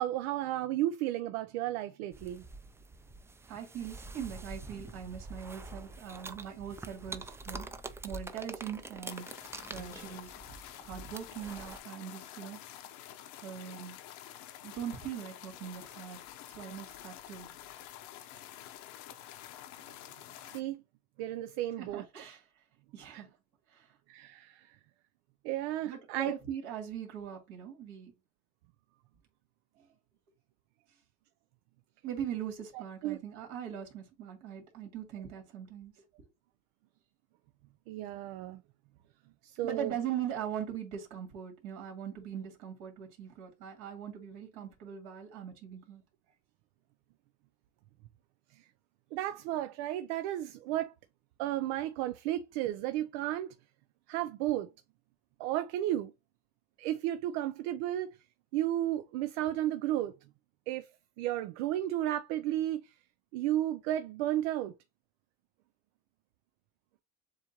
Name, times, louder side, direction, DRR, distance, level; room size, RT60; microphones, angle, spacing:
voice 1, 0.0-2.4 20.5-20.8 21.2-22.0 23.1-23.2 24.1-24.8 25.4-26.3 32.7-33.2 37.9-38.6 39.4-39.9 48.5-48.6 49.1-50.9 51.4-53.5 54.1-54.7 55.4-56.1 56.8-58.2 58.5-60.2 60.7-60.9 61.2-62.9 63.3-64.7, right 13 dB, 85° right, 0.5 m, -33 dB
sound 1, 2.1-11.8, right 3 dB, 10° right, 0.3 m, -46 dB
voice 2, 3.5-7.7 8.0-9.2 9.7-12.6 13.4-14.0 14.6-16.2 16.5-17.5 21.8-22.4 22.9-23.3 23.7-23.9 25.8-28.1 29.8-29.9 32.0-35.9 39.6-46.0, right 9 dB, 70° right, 2.5 m, -41 dB
sound 2, 9.1-20.6, left 12 dB, 75° left, 0.8 m, -49 dB
7.3 x 2.5 x 2.8 m
cardioid pair, 130°, 31 cm